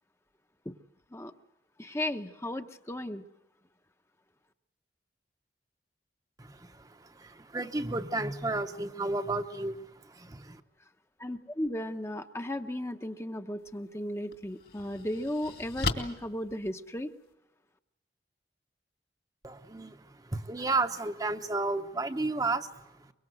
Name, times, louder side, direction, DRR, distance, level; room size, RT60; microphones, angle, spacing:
voice 1, 1.8-3.2 11.2-17.1, left 1 dB, 15° left, 7 dB, 0.8 m, -35 dB
voice 2, 6.4-10.6 19.4-23.1, right 3 dB, 20° right, 8 dB, 0.9 m, -33 dB
sound 1, 13.6-13.7 14.3-17.3, left 3 dB, 60° left, 2.5 m, -37 dB
24.0 x 23.5 x 7.9 m, 0.94 s
head